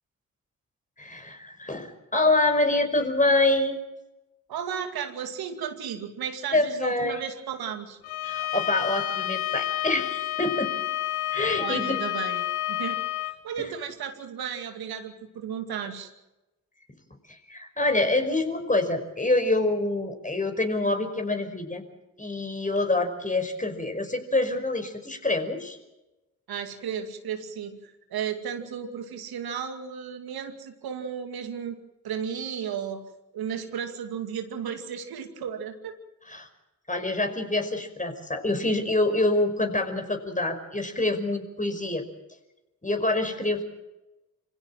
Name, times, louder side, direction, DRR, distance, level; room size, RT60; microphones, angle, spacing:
voice 1, 1.0-3.8 6.5-7.2 8.2-10.7 11.3-12.0 13.6-13.7 17.3-21.8 22.2-25.8 36.3-36.5 36.9-42.0 42.8-43.6, left 2 dB, 20° left, 6 dB, 5.3 m, -26 dB
voice 2, 4.5-8.0 11.6-12.4 12.7-13.0 13.4-16.1 26.5-31.8 32.0-33.0 33.3-36.0 43.4-43.5, right 7 dB, 70° right, 6 dB, 2.5 m, -34 dB
Bowed string instrument, 8.0-13.4, left 15 dB, 85° left, 1.4 m, -30 dB
26.5 x 16.5 x 7.7 m, 1.0 s
hypercardioid pair, 40°, 38 cm